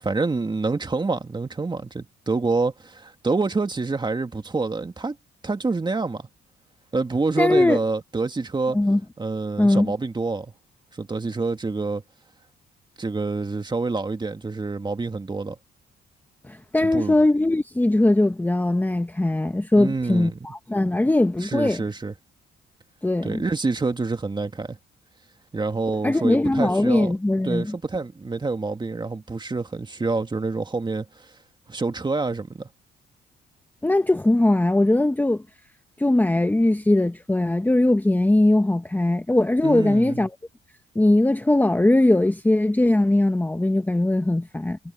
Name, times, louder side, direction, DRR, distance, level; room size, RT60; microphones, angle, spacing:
voice 1, 0.0-5.2 5.4-6.3 6.9-8.8 9.2-10.5 11.0-12.0 13.0-15.6 16.8-17.1 19.7-20.4 21.4-22.1 23.2-24.8 25.5-27.1 27.4-31.1 31.7-32.7 39.6-40.3, right 3 dB, 20° right, 2.1 m, -27 dB
voice 2, 7.4-7.8 8.7-9.0 9.6-9.9 16.5-21.8 23.0-23.4 26.0-27.7 33.8-35.4 36.0-40.3 40.9-44.8, left 1 dB, 10° left, 1.0 m, -20 dB
cardioid pair, 90°, 20 cm